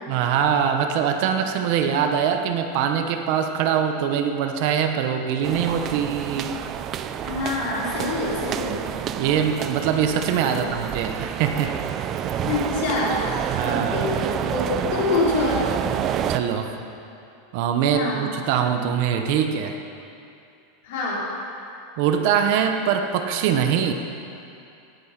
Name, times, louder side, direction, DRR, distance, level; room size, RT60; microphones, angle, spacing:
voice 1, 0.1-6.6 9.1-11.8 13.5-14.0 16.3-16.8 17.5-19.8 22.0-23.9, right 8 dB, 45° right, 6 dB, 0.9 m, -23 dB
sound 1, 5.4-16.4, right 9 dB, 25° right, 0.4 m, -28 dB
voice 2, 7.2-8.8 10.5-10.6 12.4-15.7 17.9-18.3 20.8-21.2, left 3 dB, 60° left, -5 dB, 3.7 m, -26 dB
17.5 x 8.6 x 5.9 m, 2.6 s
supercardioid pair, 180°, 0 cm